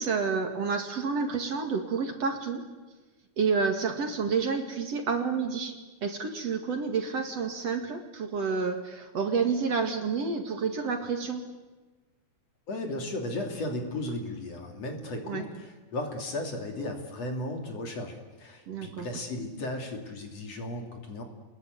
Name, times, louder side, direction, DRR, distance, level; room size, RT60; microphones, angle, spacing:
voice 1, 0.0-2.6 3.4-5.7 6.0-11.4 15.2-15.4 18.7-19.1, right 5 dB, 50° right, 4 dB, 2.9 m, -29 dB
voice 2, 12.7-21.2, left 1 dB, 50° left, 3 dB, 3.8 m, -35 dB
29.5 x 21.5 x 9.5 m, 1.2 s
omnidirectional pair, 3.9 m